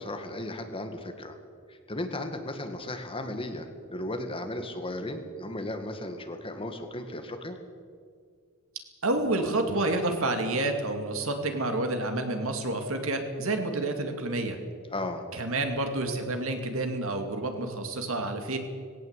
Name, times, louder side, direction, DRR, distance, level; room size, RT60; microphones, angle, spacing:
voice 1, 0.0-1.3 1.7-7.6 14.9-15.2, left 1 dB, 25° left, 6 dB, 1.9 m, -35 dB
voice 2, 9.0-14.6 15.3-18.6, right 2 dB, 65° right, 5 dB, 2.5 m, -29 dB
19.0 x 17.5 x 8.2 m, 2.1 s
head